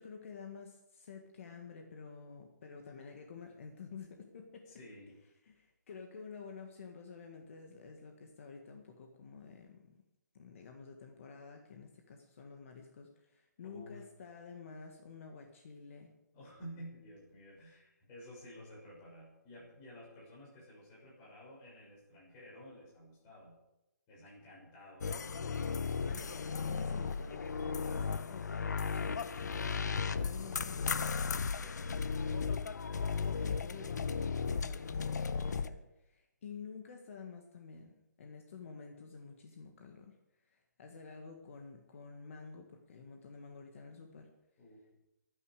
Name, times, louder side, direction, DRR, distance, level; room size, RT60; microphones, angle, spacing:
voice 1, 0.0-4.7 5.4-10.0 10.3-16.1 25.9-31.1 32.9-37.9 38.2-40.2 40.4-44.3, left 5 dB, 45° left, 3 dB, 1.8 m, -50 dB
voice 2, 4.7-5.2 13.6-14.0 16.3-23.6 24.1-25.5 31.4-32.4 44.6-44.8, equal, 20° left, -6 dB, 6.6 m, -53 dB
sound 1, 25.0-35.7, left 5 dB, 70° left, 0.9 m, -35 dB
23.5 x 9.9 x 5.0 m, 0.92 s
hypercardioid pair, 165°, 10 cm